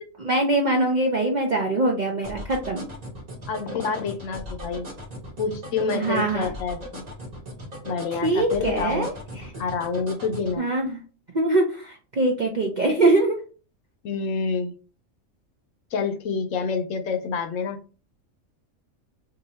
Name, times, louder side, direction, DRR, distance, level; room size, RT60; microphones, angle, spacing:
voice 1, 0.2-2.9 5.9-6.5 8.1-9.5 10.6-11.0 11.3-13.4, right 2 dB, 55° right, 0 dB, 0.5 m, -23 dB
sound 1, 2.2-10.6, equal, 35° right, 1.0 m, -38 dB
voice 2, 3.5-4.9 5.4-7.0 7.8-9.1 9.6-10.6 14.0-14.7 15.9-17.8, left 5 dB, 70° left, 7 dB, 0.9 m, -27 dB
2.7 x 2.6 x 4.1 m, 0.36 s
omnidirectional pair, 1.4 m